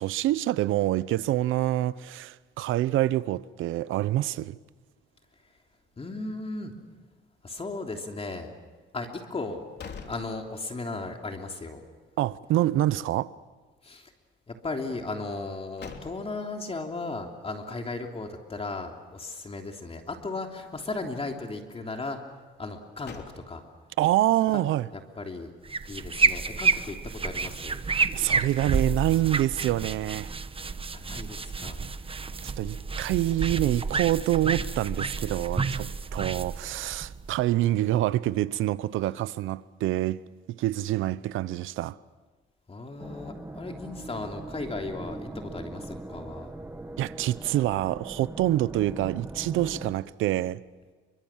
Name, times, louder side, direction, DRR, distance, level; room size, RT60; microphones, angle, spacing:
voice 1, 0.0-4.6 12.2-13.3 24.0-24.9 28.1-30.3 32.4-40.2 40.6-42.0 47.0-50.6, right 14 dB, 90° right, 0.8 m, -26 dB
voice 2, 6.0-6.7 7.4-8.5 8.9-9.6 10.1-11.8 13.8-14.1 14.5-22.2 22.6-23.6 24.5-24.6 24.9-25.5 25.9-27.8 30.9-31.8 42.7-46.5, left 3 dB, 30° left, 3.2 m, -36 dB
sound 1, 9.4-11.0 11.4-11.5 15.3-16.6 22.6-23.9, left 5 dB, 60° left, 3.3 m, -45 dB
sound 2, 25.7-37.6, right 4 dB, 30° right, 1.2 m, -30 dB
sound 3, 43.0-49.9, right 2 dB, 10° right, 1.7 m, -40 dB
29.0 x 24.5 x 7.4 m
cardioid pair, 90°, 20 cm